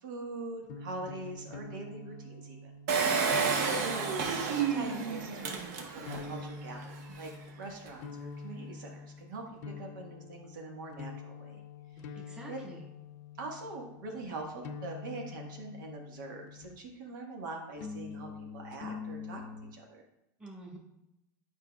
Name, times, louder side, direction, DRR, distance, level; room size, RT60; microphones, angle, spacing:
voice 1, 0.0-2.7 3.7-5.5 5.8-7.3 7.6-11.6 12.1-12.6 13.4-18.3 18.5-19.4 19.7-20.0, right 2 dB, 85° right, 0 dB, 1.4 m, -43 dB
sound 1, 0.6-17.0 17.8-19.7, left 4 dB, 55° left, 0.6 m, -46 dB
Engine, 2.9-6.3 6.8-6.9 7.1-7.2, right 5 dB, 60° right, 1.0 m, -30 dB
voice 2, 3.0-3.9 12.1-12.8 20.4-20.8, right 1 dB, 10° right, -4 dB, 1.3 m, -47 dB
9.0 x 4.7 x 2.3 m, 0.87 s
supercardioid pair, 155°, 10 cm